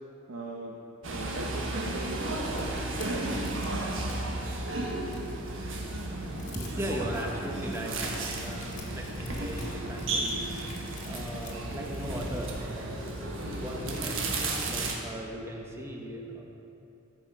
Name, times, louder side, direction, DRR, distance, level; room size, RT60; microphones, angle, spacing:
voice 1, 0.3-0.8 1.0-2.5 3.1-3.3, right 2 dB, 85° right, -2 dB, 0.9 m, -39 dB
sound 1, 1.0-14.9, right 2 dB, 65° right, 1.3 m, -33 dB
sound 2, 2.6-4.2 4.7-5.5 6.0-6.1 6.3-7.3 7.8-14.9, left 4 dB, 35° left, 1.7 m, -51 dB
voice 2, 6.5-13.2 13.6-16.4, equal, 10° right, 0 dB, 1.1 m, -38 dB
13.5 x 5.8 x 5.4 m, 2.8 s
head